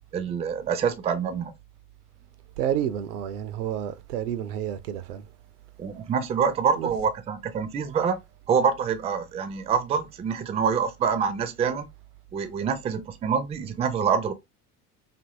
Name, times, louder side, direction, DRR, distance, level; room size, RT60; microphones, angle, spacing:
voice 1, 0.1-1.5 5.8-8.2 8.5-11.9 12.3-14.3, right 6 dB, 15° right, 0.4 m, -26 dB
voice 2, 2.6-5.3 6.7-7.0, right 10 dB, 75° right, 0.5 m, -30 dB
2.7 x 2.5 x 2.6 m
figure-of-eight pair, 65°, 46 cm